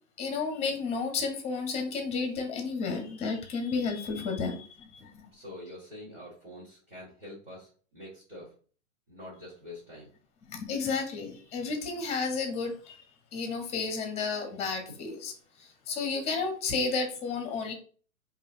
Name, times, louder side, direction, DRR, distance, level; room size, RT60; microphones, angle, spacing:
voice 1, 0.2-5.3 10.5-13.0 13.3-15.3 15.6-17.7, left 4 dB, 15° left, 5 dB, 0.7 m, -32 dB
voice 2, 5.3-8.6 9.1-10.1, left 1 dB, 20° right, -7 dB, 1.6 m, -46 dB
4.8 x 2.6 x 2.6 m, 0.41 s
figure-of-eight pair, 110°, 43 cm